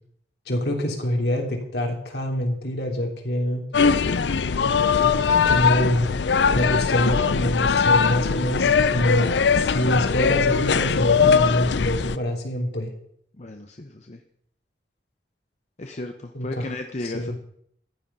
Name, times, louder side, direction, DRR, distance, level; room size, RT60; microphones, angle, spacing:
voice 1, 0.5-3.6 5.0-5.1 5.4-6.1 6.5-12.9 16.3-16.7 17.0-17.4, equal, 65° left, 2 dB, 3.0 m, -25 dB
sound 1, 3.7-12.2, left 5 dB, 85° left, 0.6 m, -20 dB
voice 2, 13.4-14.2 15.8-17.4, left 2 dB, 40° left, 5 dB, 0.9 m, -34 dB
14.5 x 10.0 x 5.5 m, 0.68 s
head